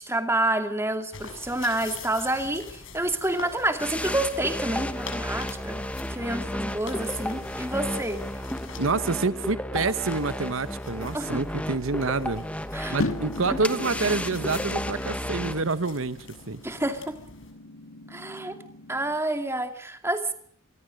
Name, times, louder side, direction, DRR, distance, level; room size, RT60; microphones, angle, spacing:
voice 1, 0.0-5.8 6.1-8.2 11.1-11.4 12.7-13.0 13.6-13.9 16.6-17.2 18.1-18.6 18.9-20.3, right 1 dB, 10° right, 2.6 m, -28 dB
sound 1, 1.1-8.9 9.9-17.5, left 4 dB, 70° left, 7.3 m, -45 dB
sound 2, 3.8-15.6, left 1 dB, 5° left, 1.2 m, -33 dB
voice 2, 8.8-12.4 12.9-16.6, right 3 dB, 75° right, 1.0 m, -27 dB
sound 3, 13.0-19.2, left 2 dB, 85° left, 2.7 m, -37 dB
27.0 x 20.5 x 6.5 m
head